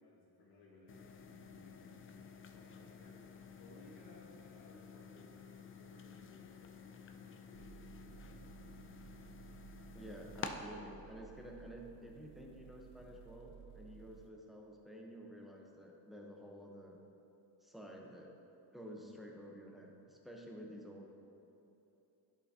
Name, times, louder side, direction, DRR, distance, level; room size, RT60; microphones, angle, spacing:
voice 1, 0.0-3.2 3.6-9.4, left 2 dB, 60° left, -7 dB, 1.5 m, -62 dB
sound 1, 0.9-10.5, left 6 dB, 30° left, 0.4 m, -51 dB
sound 2, 7.5-14.3, right 9 dB, 70° right, 0.7 m, -57 dB
voice 2, 9.9-17.0 17.6-18.3 18.7-21.1, equal, ahead, -1 dB, 0.8 m, -51 dB
11.0 x 5.9 x 2.8 m, 2.9 s
cardioid pair, 125°, 42 cm